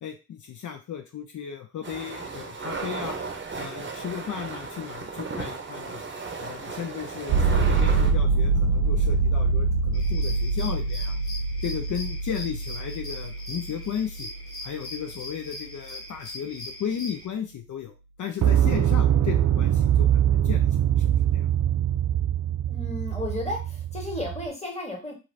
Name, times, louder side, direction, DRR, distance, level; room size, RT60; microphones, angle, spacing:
voice 1, 0.0-3.2 3.6-6.0 6.4-11.2 11.6-14.3 14.6-20.7 21.0-21.5, left 8 dB, 70° left, 5 dB, 0.5 m, -35 dB
sound 1, 1.8-8.1, right 4 dB, 40° right, 0.6 m, -35 dB
sound 2, 7.3-15.1 18.4-24.5, right 7 dB, 80° right, 0.5 m, -24 dB
sound 3, 9.9-17.3, left 1 dB, 45° left, 1.1 m, -41 dB
voice 2, 22.6-25.1, left 2 dB, 20° left, 0 dB, 1.3 m, -33 dB
2.5 x 2.4 x 3.1 m, 0.29 s
cardioid pair, 50°, 31 cm